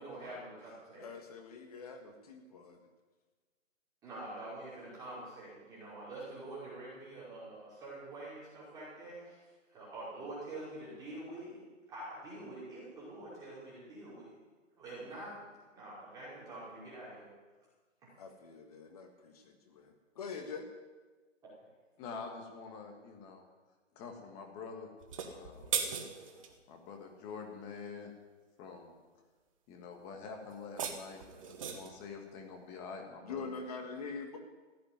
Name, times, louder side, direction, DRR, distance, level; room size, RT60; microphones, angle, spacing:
voice 1, 0.0-1.1 4.0-9.4 9.7-11.6 11.9-14.3 14.8-15.5 15.8-17.3, right 2 dB, 10° right, -8 dB, 5.1 m, -46 dB
voice 2, 1.0-2.8 18.2-20.7 33.2-34.4, left 5 dB, 30° left, 5 dB, 1.5 m, -44 dB
voice 3, 22.0-23.4 23.9-24.9 25.2-25.7 26.7-28.1 28.6-28.9 29.7-33.5, left 5 dB, 15° left, 3 dB, 1.5 m, -46 dB
sound 1, 25.0-26.5 30.5-32.0, right 7 dB, 25° right, 1.3 m, -38 dB
15.0 x 8.6 x 9.5 m, 1.3 s
hypercardioid pair, 160°, 37 cm